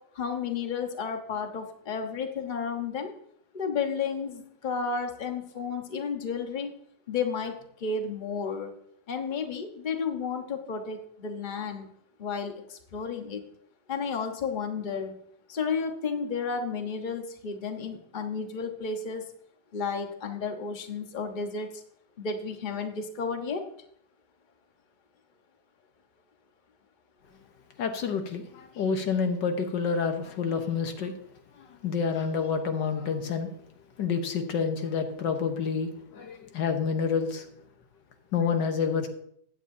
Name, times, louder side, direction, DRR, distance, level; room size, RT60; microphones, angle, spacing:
voice 1, 0.1-3.1 3.5-6.7 7.1-8.7 9.1-11.9 12.2-13.4 13.9-15.1 15.5-19.2 19.7-21.8 22.2-23.6, left 5 dB, 30° left, 4 dB, 1.1 m, -32 dB
voice 2, 27.8-31.1 31.6-33.5 34.0-37.4 38.3-39.1, left 6 dB, 80° left, 6 dB, 1.7 m, -28 dB
15.5 x 9.9 x 2.7 m, 0.67 s
omnidirectional pair, 1.9 m